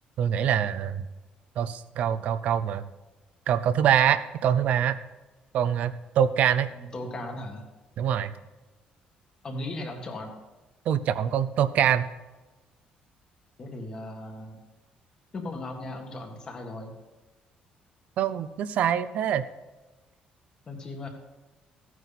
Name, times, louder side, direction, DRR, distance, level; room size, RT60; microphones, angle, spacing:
voice 1, 0.2-1.1 1.6-2.9 3.5-5.0 5.5-6.7 8.0-8.3 10.9-12.1 18.2-19.4, right 9 dB, 55° right, 13 dB, 0.6 m, -24 dB
voice 2, 6.7-7.7 9.4-10.3 13.6-14.6 15.3-16.9 20.7-21.1, left 2 dB, 25° left, 3 dB, 1.8 m, -37 dB
15.5 x 9.2 x 4.2 m, 1.1 s
cardioid pair, 180°, 3 cm